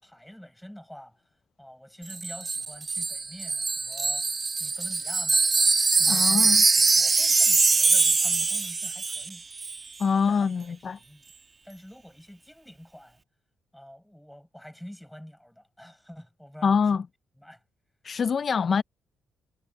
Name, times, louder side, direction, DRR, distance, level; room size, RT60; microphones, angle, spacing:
voice 1, 0.0-1.2 1.6-4.3 4.6-5.7 6.0-9.4 10.1-11.3 11.6-13.2 13.7-17.0 17.4-17.6, equal, ahead, 7.5 m, -47 dB
Wind chime, 2.1-9.3 9.6-9.8, right 4 dB, 25° right, 1.4 m, -23 dB
voice 2, 6.1-6.6 10.0-11.0 16.6-17.0 18.0-18.8, left 6 dB, 35° left, 0.4 m, -24 dB
cardioid pair, 150°, 0 cm